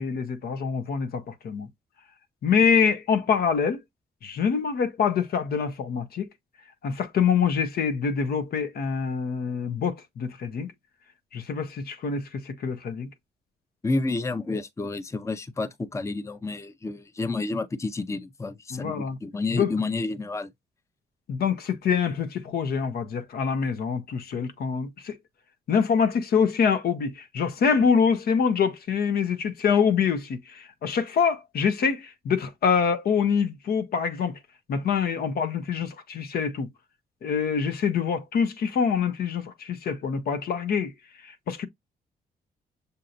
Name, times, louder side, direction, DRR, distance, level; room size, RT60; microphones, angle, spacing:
voice 1, 0.0-1.7 2.4-3.8 4.2-6.3 6.8-10.7 11.3-13.1 18.7-19.2 19.5-19.7 21.3-25.2 25.7-34.4 34.7-36.7 37.2-40.9 41.2-41.7, left 6 dB, 70° left, 0.8 m, -25 dB
voice 2, 13.8-20.5, left 3 dB, 15° left, 0.6 m, -30 dB
6.6 x 2.7 x 2.5 m
cardioid pair, 75°, 17 cm